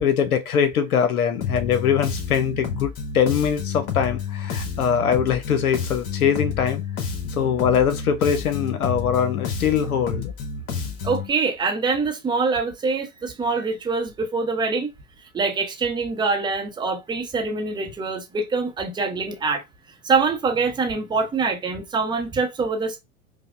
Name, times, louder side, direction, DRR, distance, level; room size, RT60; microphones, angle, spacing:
voice 1, 0.0-6.8 7.3-10.3, left 8 dB, 90° left, 0.7 m, -22 dB
Bass guitar, 1.4-11.3, left 6 dB, 50° left, 1.2 m, -30 dB
voice 2, 11.0-14.9 15.3-19.6 20.0-23.0, right 4 dB, 10° right, 0.6 m, -24 dB
4.9 x 2.1 x 2.3 m
hypercardioid pair, 110°, 42 cm